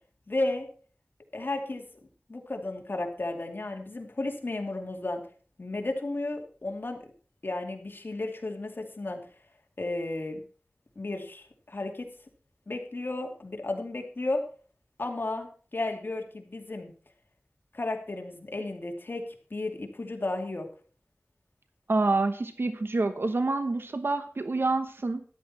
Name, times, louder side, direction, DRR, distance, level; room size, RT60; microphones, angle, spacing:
voice 1, 0.3-0.7 1.3-1.8 2.3-5.2 5.6-7.0 7.4-9.2 9.8-10.4 11.0-12.1 12.7-14.4 15.0-16.9 17.7-19.2 19.5-20.7, left 2 dB, 60° left, 3 dB, 2.5 m, -33 dB
voice 2, 21.9-25.2, right 3 dB, 70° right, 9 dB, 1.0 m, -27 dB
13.5 x 11.0 x 4.3 m, 0.41 s
wide cardioid pair, 60°, 4 cm